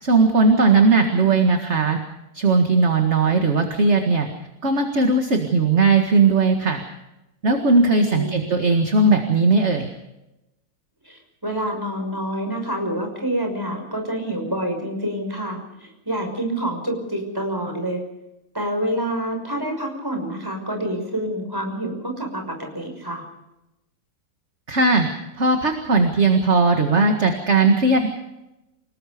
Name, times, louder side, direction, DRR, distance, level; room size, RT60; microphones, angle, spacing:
voice 1, 0.0-2.0 2.3-4.3 4.6-6.8 7.4-9.9 24.7-25.1 25.4-28.1, right 3 dB, 35° right, 4 dB, 2.0 m, -18 dB
voice 2, 0.6-1.4 8.1-8.5 11.0-18.0 18.5-23.2, right 1 dB, 10° right, 3 dB, 6.0 m, -27 dB
28.5 x 19.5 x 5.2 m, 0.93 s
omnidirectional pair, 2.3 m